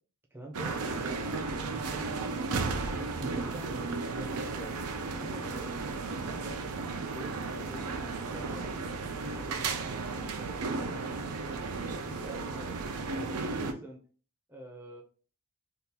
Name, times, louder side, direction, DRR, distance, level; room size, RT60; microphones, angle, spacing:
voice 1, 0.3-4.8 5.2-7.9 8.2-11.3 11.8-12.8 13.4-14.0 14.5-15.0, right 1 dB, 10° right, -1 dB, 0.6 m, -47 dB
sound 1, 0.5-13.7, right 4 dB, 85° right, 0.5 m, -34 dB
sound 2, 5.4-11.3, right 1 dB, 35° left, 0.9 m, -56 dB
2.8 x 2.4 x 3.6 m, 0.40 s
head